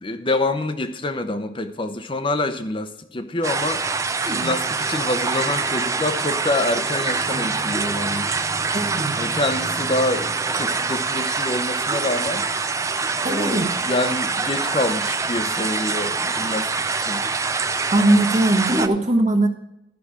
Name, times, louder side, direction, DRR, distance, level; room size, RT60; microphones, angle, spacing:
voice 1, 0.0-3.9 4.2-8.4 9.2-12.5 13.2-17.2, left 2 dB, 25° left, 8 dB, 0.8 m, -26 dB
sound 1, 3.4-18.9, right 4 dB, 15° right, 0.4 m, -25 dB
voice 2, 4.2-4.5 8.7-9.2 13.2-13.7 17.9-19.5, right 1 dB, 40° right, 3 dB, 1.4 m, -20 dB
13.5 x 5.9 x 5.0 m, 0.85 s
head